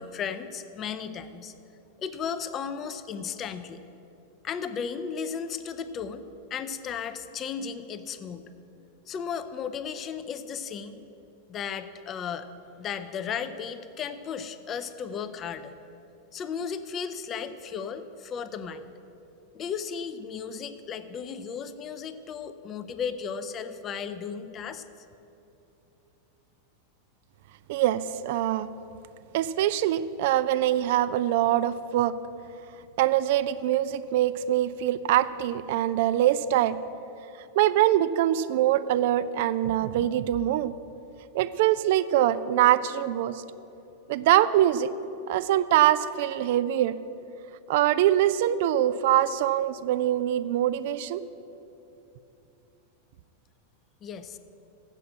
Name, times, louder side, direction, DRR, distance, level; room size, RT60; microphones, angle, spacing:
voice 1, 0.0-1.5 2.0-3.8 4.4-6.3 6.5-8.5 9.1-11.0 11.5-12.5 12.8-15.8 16.3-18.9 19.5-24.8 54.0-54.4, left 6 dB, 30° left, 11 dB, 0.5 m, -35 dB
voice 2, 27.7-28.7 29.3-32.2 33.0-36.8 37.6-40.7 41.3-43.4 44.1-44.9 45.3-47.0 47.7-51.2, right 12 dB, 50° right, 15 dB, 0.3 m, -23 dB
7.6 x 7.5 x 7.5 m, 2.9 s
figure-of-eight pair, 90°, 0 cm